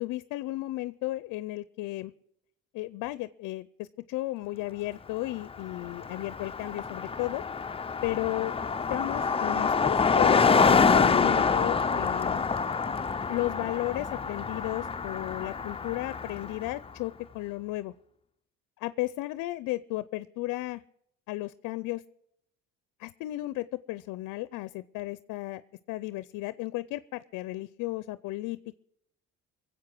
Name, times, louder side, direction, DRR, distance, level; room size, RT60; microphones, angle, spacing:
voice 1, 0.0-2.1 2.7-7.4 8.0-8.5 8.9-12.5 13.3-17.9 18.8-20.8 21.3-22.0 23.0-25.6 25.9-28.8, left 18 dB, 75° left, 16 dB, 0.5 m, -34 dB
Car passing by, 5.4-5.5 5.7-16.7, left 5 dB, 20° left, 0.5 m, -26 dB
22.0 x 8.0 x 6.1 m, 0.75 s
supercardioid pair, 80°, 31 cm